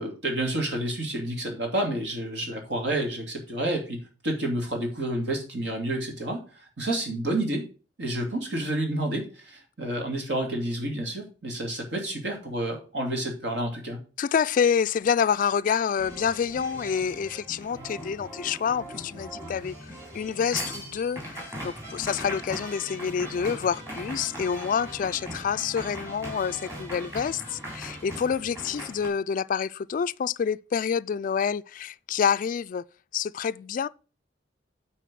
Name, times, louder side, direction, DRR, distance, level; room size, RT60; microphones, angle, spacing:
voice 1, 0.0-4.0 4.2-6.4 6.8-7.6 8.0-14.0, right 1 dB, 70° right, 2.7 m, -29 dB
voice 2, 14.2-32.8 33.1-33.9, left 7 dB, 45° left, 0.3 m, -27 dB
sound 1, 16.0-29.1, equal, 15° right, 3.8 m, -39 dB
9.1 x 4.3 x 6.2 m
head